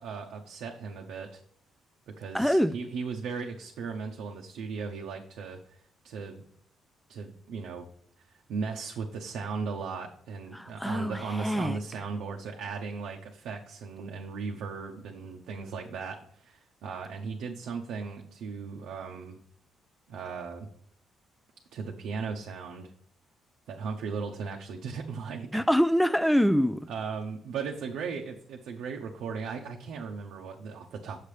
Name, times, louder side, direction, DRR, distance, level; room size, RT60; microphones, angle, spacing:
voice 1, 0.0-1.4 2.1-5.8 6.0-6.4 7.1-7.9 8.2-19.4 20.1-20.7 21.7-22.9 23.7-25.7 26.2-26.4 26.9-31.2, right 5 dB, 85° right, 0.7 m, -37 dB
voice 2, 2.3-2.7 10.5-11.8 25.5-26.9, equal, ahead, 0.3 m, -25 dB
8.5 x 6.5 x 3.2 m
cardioid pair, 100°, 0 cm